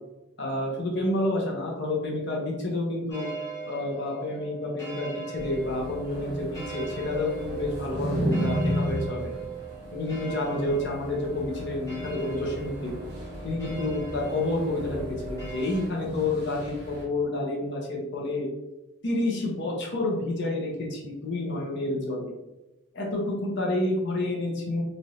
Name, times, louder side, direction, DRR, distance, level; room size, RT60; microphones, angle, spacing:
voice 1, 0.4-3.3 3.7-9.3 9.9-12.9 13.4-18.5 19.0-22.3 22.9-24.8, left 2 dB, 55° left, -1 dB, 0.8 m, -29 dB
sound 1, 3.1-15.9, right 5 dB, 15° left, 1.0 m, -40 dB
sound 2, 5.4-17.0, equal, 50° right, 1.0 m, -34 dB
3.1 x 2.6 x 2.7 m, 1.0 s
head